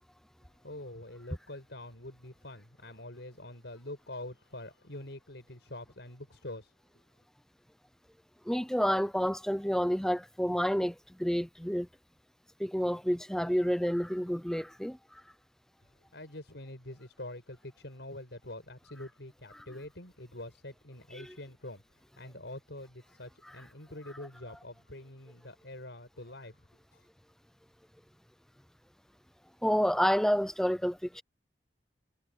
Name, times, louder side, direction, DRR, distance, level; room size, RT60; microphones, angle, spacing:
voice 1, 0.6-6.7 16.1-26.7 26.9-27.1, left 1 dB, 90° left, 5.9 m, -45 dB
voice 2, 8.5-11.9 12.6-15.2 21.1-21.3 29.6-31.2, equal, 5° left, 0.7 m, -29 dB
head